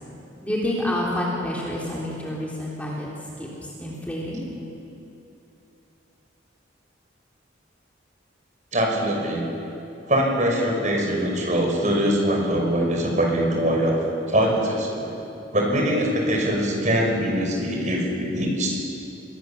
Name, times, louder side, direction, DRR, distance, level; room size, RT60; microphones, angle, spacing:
voice 1, 0.4-3.5 3.8-4.5, left 1 dB, 5° left, -5 dB, 3.8 m, -28 dB
voice 2, 8.7-9.4 10.1-14.0 14.3-15.2 15.5-18.8, equal, 40° right, 0 dB, 5.8 m, -22 dB
29.0 x 22.0 x 7.3 m, 3.0 s
head